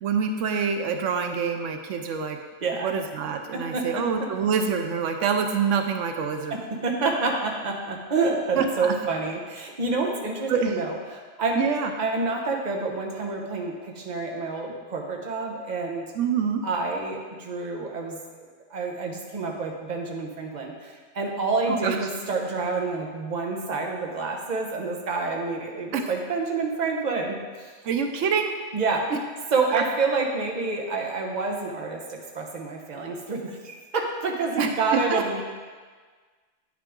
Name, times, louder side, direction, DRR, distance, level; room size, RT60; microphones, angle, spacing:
voice 1, 0.0-2.4 2.8-6.5 8.6-8.9 10.5-10.8 11.6-11.9 16.1-16.6 21.7-22.0 25.9-26.1 27.8-28.5 29.1-29.2 34.6-35.2, right 6 dB, 85° right, 5 dB, 1.0 m, -26 dB
voice 2, 2.6-2.9 3.5-4.0 6.5-11.6 12.0-16.0 16.6-18.2 18.7-27.7 28.7-29.1 29.5-35.4, right 3 dB, 40° right, 0 dB, 1.1 m, -28 dB
9.4 x 6.0 x 3.7 m, 1.5 s
omnidirectional pair, 1.2 m